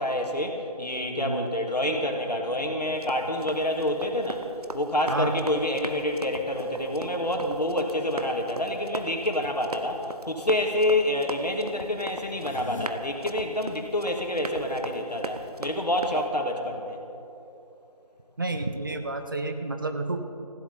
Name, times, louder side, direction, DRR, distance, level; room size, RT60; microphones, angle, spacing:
voice 1, 0.0-4.4 4.7-17.0, left 1 dB, 80° left, 2 dB, 2.5 m, -27 dB
Run, 2.9-16.3, right 2 dB, 70° right, 1.1 m, -39 dB
sound 1, 12.3-12.9, left 3 dB, 50° left, 0.8 m, -38 dB
voice 2, 18.4-20.2, right 2 dB, 30° right, 6 dB, 0.7 m, -30 dB
19.5 x 15.5 x 4.2 m, 2.8 s
figure-of-eight pair, 160°, 20 cm